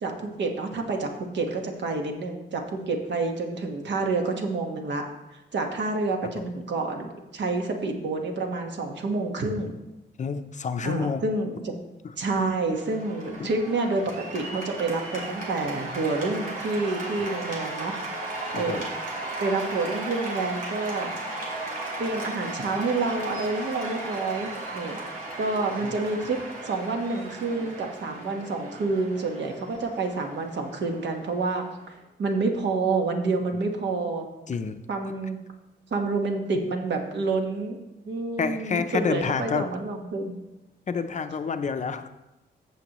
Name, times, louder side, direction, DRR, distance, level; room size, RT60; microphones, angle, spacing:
voice 1, 0.0-5.0 5.3-9.7 10.8-11.7 12.2-18.0 18.5-18.9 19.4-21.2 22.0-25.0 25.4-26.4 26.6-31.6 32.2-34.3 34.9-35.4 35.9-37.8 38.1-40.3, right 3 dB, 70° right, 3 dB, 1.3 m, -28 dB
voice 2, 10.2-11.2 12.0-12.1 13.4-13.5 17.2-17.3 18.5-18.8 25.8-26.0 33.5-33.6 34.5-34.8 38.4-39.7 40.9-42.1, left 5 dB, 40° left, 9 dB, 0.5 m, -29 dB
Cheering / Applause, 12.7-32.0, right 2 dB, 50° right, 2.4 m, -36 dB
14.5 x 7.0 x 3.0 m, 0.99 s
wide cardioid pair, 170°, 19 cm